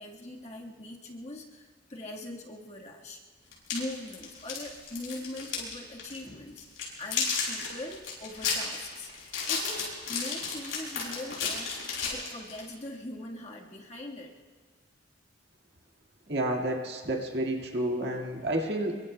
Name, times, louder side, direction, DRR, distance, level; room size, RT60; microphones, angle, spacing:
voice 1, 0.0-3.2 3.7-6.6 7.0-14.3, left 1 dB, 35° left, -1 dB, 1.5 m, -41 dB
sound 1, 3.5-5.7 6.0-6.2 6.6-12.7, left 5 dB, 85° left, 6.5 m, -32 dB
voice 2, 16.3-19.0, right 1 dB, 55° right, 1 dB, 1.8 m, -30 dB
27.5 x 23.5 x 2.2 m, 1.5 s
head